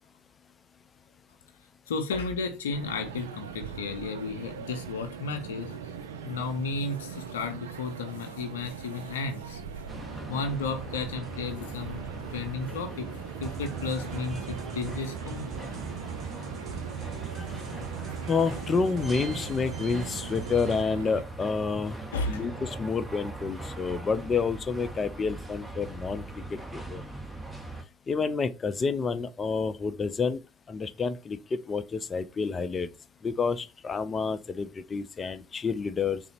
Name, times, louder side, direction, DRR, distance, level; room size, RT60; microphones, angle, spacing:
voice 1, 1.9-5.9 6.2-9.6 10.3-13.1 13.4-15.6 22.1-22.6, left 3 dB, 90° left, 0.5 m, -33 dB
sound 1, 2.7-21.2, right 7 dB, 85° right, 0.3 m, -41 dB
sound 2, 9.9-27.8, right 2 dB, 5° right, 0.9 m, -41 dB
sound 3, 13.4-20.8, right 6 dB, 45° right, 1.0 m, -41 dB
voice 2, 18.3-22.0 22.3-26.2 26.7-27.0 28.1-30.4 30.7-32.9 33.2-36.2, left 5 dB, 35° left, 0.4 m, -29 dB
3.8 x 2.0 x 4.3 m
hypercardioid pair, 65°, 0 cm